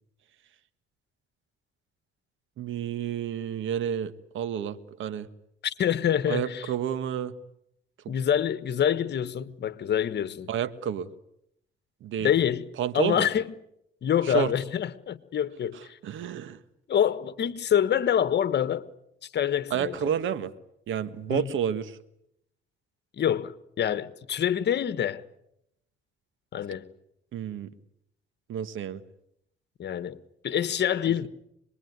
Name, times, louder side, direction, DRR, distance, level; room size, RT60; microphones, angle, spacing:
voice 1, 2.6-5.3 6.3-7.3 10.5-11.1 12.0-12.3 12.8-13.3 14.2-14.5 16.0-16.6 19.7-20.5 20.9-22.0 27.3-27.7 28.5-29.0 31.1-31.2, right 9 dB, 75° right, 1.6 m, -30 dB
voice 2, 5.6-6.7 8.1-10.5 12.2-12.7 12.9-13.5 14.0-16.0 16.9-18.9 19.2-19.9 21.3-21.5 23.2-25.2 26.5-26.9 29.8-30.2 30.4-31.3, left 9 dB, 60° left, 1.5 m, -26 dB
26.0 x 21.5 x 9.5 m
cardioid pair, 90°, 20 cm